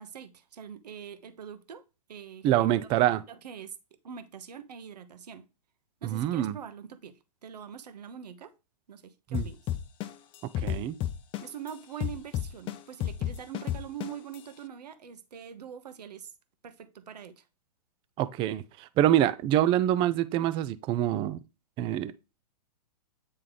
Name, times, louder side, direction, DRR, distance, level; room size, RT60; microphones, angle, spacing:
voice 1, 0.0-1.8 2.1-2.9 3.3-3.8 4.0-5.5 6.0-8.5 8.9-9.6 11.4-16.3 16.6-17.4, right 8 dB, 75° right, 1.0 m, -44 dB
voice 2, 2.4-3.2 6.0-6.6 9.3-9.5 10.6-10.9 18.2-21.4 21.8-22.1, right 12 dB, 25° right, 0.4 m, -25 dB
sound 1, 9.3-11.7 12.0-14.4, left 12 dB, 25° left, 0.6 m, -31 dB
9.3 x 3.2 x 3.9 m
hypercardioid pair, 115°, 21 cm